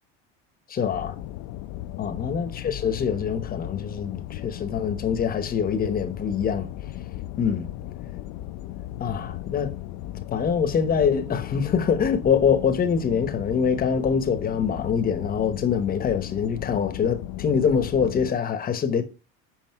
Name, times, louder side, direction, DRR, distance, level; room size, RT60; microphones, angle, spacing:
voice 1, 0.7-1.1 2.0-6.7 7.4-7.7 9.0-9.7 10.3-19.0, left 7 dB, 30° left, 1.0 m, -24 dB
sound 1, 0.8-18.3, left 14 dB, 60° left, 0.6 m, -36 dB
7.7 x 5.1 x 4.6 m
cardioid pair, 135°, 32 cm